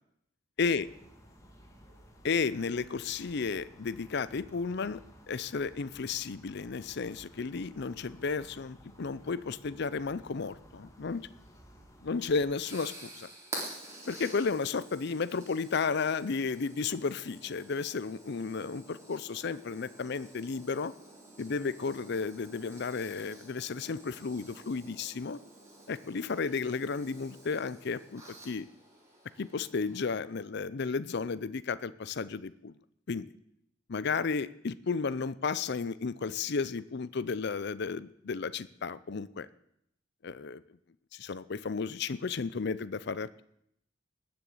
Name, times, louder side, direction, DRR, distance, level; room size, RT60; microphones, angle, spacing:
sound 1, 0.6-12.5, equal, 15° left, 2.1 m, -56 dB
voice 1, 2.2-5.0 5.3-11.3 12.0-13.3 14.1-20.9 21.4-25.4 25.9-28.7 29.4-32.7 33.1-33.3 33.9-39.5 40.2-40.6 41.1-43.4, left 4 dB, 60° left, 16 dB, 0.6 m, -33 dB
sound 2, 12.0-30.0, right 1 dB, 15° right, 3.9 m, -49 dB
19.0 x 7.0 x 7.8 m, 0.74 s
head